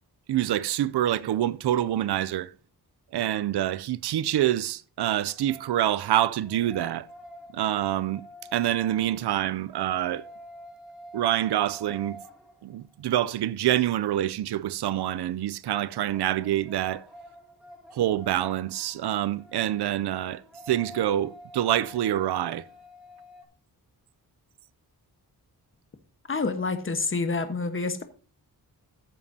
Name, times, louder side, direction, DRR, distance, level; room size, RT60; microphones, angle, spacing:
voice 1, 0.3-2.5 3.1-7.1 7.5-8.2 8.5-10.2 11.1-12.2 12.6-17.0 17.9-20.4 20.7-22.6, right 12 dB, 90° right, 0.6 m, -26 dB
sound 1, 5.2-13.1 15.6-23.4, equal, ahead, 2.4 m, -48 dB
voice 2, 26.3-28.0, left 4 dB, 30° left, 1.3 m, -28 dB
14.5 x 7.3 x 2.8 m
wide cardioid pair, 95°, 38 cm